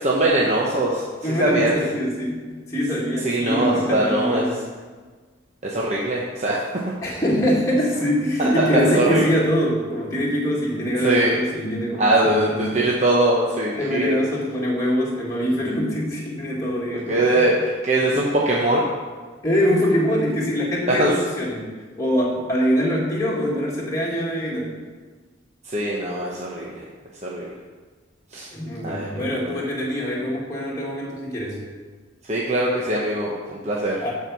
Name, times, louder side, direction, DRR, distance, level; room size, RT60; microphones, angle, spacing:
voice 1, 0.0-1.8 3.2-4.5 5.6-6.6 8.4-9.4 11.0-11.3 12.0-14.2 17.1-18.8 20.9-21.1 25.6-26.8 27.2-27.6 28.3-28.5 28.8-29.6 32.3-34.1, right 1 dB, 35° right, -4 dB, 1.0 m, -22 dB
voice 2, 1.2-4.6 7.0-12.8 13.8-17.4 19.4-21.7 22.0-24.7 28.5-31.6 34.0-34.1, equal, 15° left, -5 dB, 1.9 m, -23 dB
12.5 x 4.6 x 6.1 m, 1.4 s
head